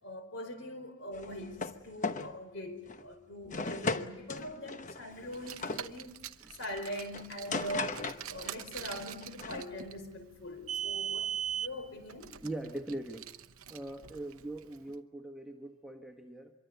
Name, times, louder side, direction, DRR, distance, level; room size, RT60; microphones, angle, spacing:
voice 1, 0.0-6.1 6.6-12.3, equal, 60° left, 8 dB, 4.8 m, -42 dB
sound 1, 1.1-2.3 2.9-3.1 3.5-5.9 7.1-8.6 8.9-9.6, left 3 dB, 35° left, 1.0 m, -37 dB
Car, 5.3-14.8, right 9 dB, 85° right, 0.9 m, -41 dB
voice 2, 12.4-13.3 13.7-16.5, right 1 dB, ahead, 3 dB, 1.5 m, -41 dB
25.5 x 23.5 x 8.2 m, 0.93 s
head